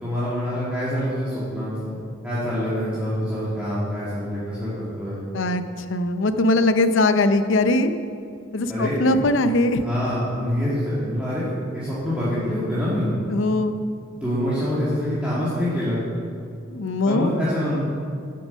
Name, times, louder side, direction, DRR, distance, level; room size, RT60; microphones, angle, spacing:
voice 1, 0.0-5.2 8.7-9.2 9.8-13.1 14.2-16.0 17.1-17.8, equal, 5° right, -11 dB, 2.1 m, -26 dB
voice 2, 5.9-8.0 8.5-9.8 13.3-13.8 16.7-17.3, left 2 dB, 70° left, 10 dB, 0.6 m, -20 dB
8.9 x 8.5 x 6.5 m, 2.3 s
head